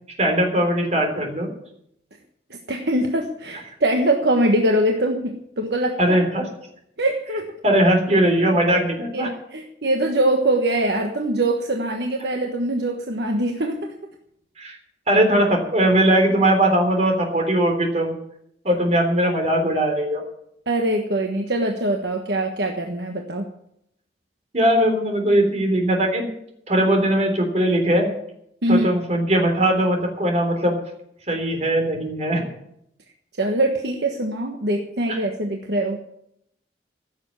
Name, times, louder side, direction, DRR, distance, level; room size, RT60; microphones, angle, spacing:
voice 1, 0.2-1.5 6.0-6.4 7.6-9.3 14.6-14.8 15.1-18.1 18.6-20.2 24.5-26.2 26.7-28.1 28.7-30.8 31.3-32.5, right 1 dB, 35° right, 2 dB, 3.5 m, -19 dB
voice 2, 2.7-6.2 7.0-7.5 9.1-13.9 20.7-23.5 28.6-29.0 33.4-36.0, right 1 dB, 65° right, 3 dB, 1.4 m, -23 dB
15.5 x 7.3 x 8.8 m, 0.76 s
head